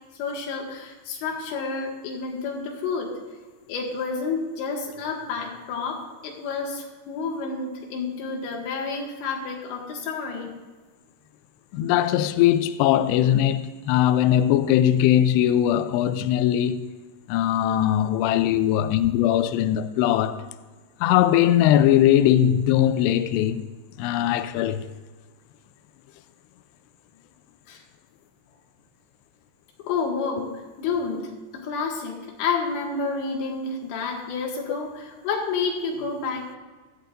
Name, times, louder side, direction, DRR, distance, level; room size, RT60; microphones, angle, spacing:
voice 1, 0.1-3.1 3.7-10.5 27.7-27.8 29.8-36.6, left 4 dB, 70° left, 4.0 m, -30 dB
voice 2, 11.7-16.8 17.3-20.4 21.0-23.7 24.0-24.8, left 11 dB, 90° left, 2.4 m, -20 dB
17.0 x 13.0 x 2.6 m
omnidirectional pair, 5.5 m